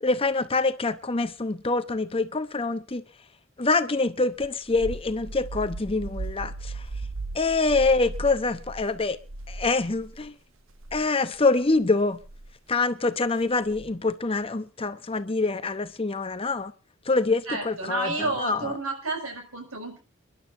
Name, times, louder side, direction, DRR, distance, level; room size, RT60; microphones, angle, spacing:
voice 1, 0.0-3.0 3.6-6.8 7.3-9.2 9.5-10.3 10.9-12.2 12.7-16.7 17.1-18.7, left 3 dB, 25° left, 0.8 m, -25 dB
sound 1, 4.4-10.3 10.7-11.0 12.2-12.5 13.7-14.1, right 2 dB, 70° right, 1.0 m, -37 dB
voice 2, 17.5-20.0, right 2 dB, 85° right, 5.9 m, -31 dB
30.0 x 11.5 x 2.6 m
head